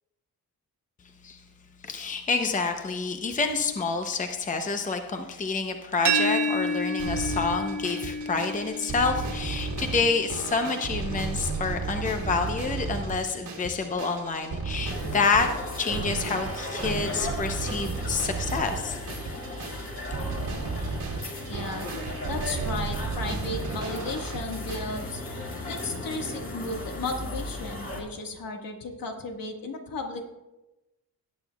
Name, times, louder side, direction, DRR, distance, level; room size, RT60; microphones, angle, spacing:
voice 1, 1.8-15.5 15.8-19.0, left 4 dB, 20° left, 5 dB, 0.7 m, -28 dB
sound 1, 6.0-11.8, right 1 dB, 55° right, 1.0 m, -31 dB
sound 2, 7.0-24.8, right 4 dB, 75° right, 2.0 m, -34 dB
sound 3, 14.9-28.0, left 1 dB, 35° left, 2.0 m, -36 dB
voice 2, 21.5-21.9 22.3-25.2 25.7-30.3, left 3 dB, 70° left, 3 dB, 1.7 m, -34 dB
18.5 x 9.1 x 2.3 m, 1.0 s
wide cardioid pair, 160°, 36 cm